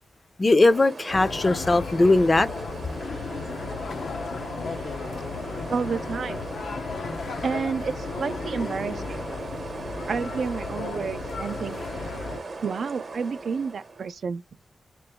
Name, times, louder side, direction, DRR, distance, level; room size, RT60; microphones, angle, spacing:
voice 1, 0.4-2.5, left 2 dB, 30° left, 0.4 m, -19 dB
sound 1, 0.7-14.1, right 3 dB, 50° right, 0.8 m, -38 dB
sound 2, 1.1-12.4, left 4 dB, 80° left, 0.6 m, -34 dB
voice 2, 5.7-6.5 7.4-9.3 10.1-11.8 12.6-14.4, right 5 dB, 70° right, 0.3 m, -30 dB
3.0 x 3.0 x 3.4 m
wide cardioid pair, 115°, 0 cm